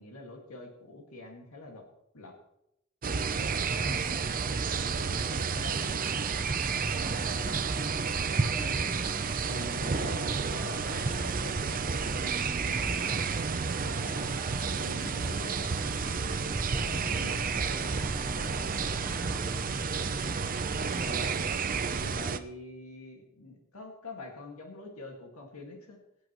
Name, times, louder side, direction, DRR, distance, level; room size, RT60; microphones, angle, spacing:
voice 1, 0.0-1.9 2.1-2.4 3.3-6.1 7.4-7.6 8.4-13.2 13.7-17.4 18.2-18.5 21.0-21.4 21.9-26.0, left 2 dB, 85° left, 1 dB, 2.0 m, -45 dB
sound 1, 3.0-22.4, right 5 dB, 40° right, 0.6 m, -31 dB
voice 2, 3.8-4.6 4.9-5.5 6.7-8.0 18.3-20.4, right 1 dB, 30° left, -5 dB, 3.6 m, -45 dB
sound 2, 5.5-21.5, equal, 10° right, 1.2 m, -43 dB
sound 3, 16.1-22.1, equal, 5° left, 2.4 m, -46 dB
22.0 x 8.5 x 3.1 m, 0.83 s
head